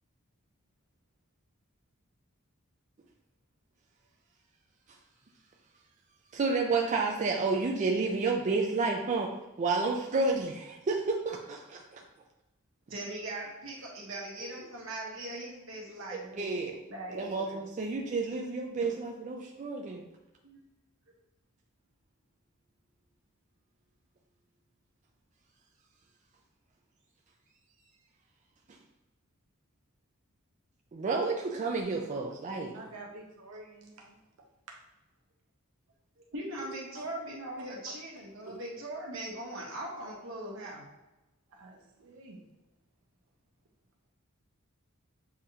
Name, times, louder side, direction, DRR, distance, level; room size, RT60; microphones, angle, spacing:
voice 1, 6.3-9.3 9.6-12.0 14.4-14.5 16.4-16.7 17.1-20.0 30.9-32.7, right 3 dB, 35° right, 0 dB, 0.4 m, -30 dB
voice 2, 12.9-16.6 16.9-17.6 20.4-20.6 36.2-40.8, right 1 dB, 65° right, -3 dB, 1.2 m, -40 dB
voice 3, 32.7-34.2 36.6-37.1 38.4-38.7 41.5-42.4, right 2 dB, 85° right, 0 dB, 0.6 m, -48 dB
7.1 x 2.5 x 2.8 m, 1.0 s
head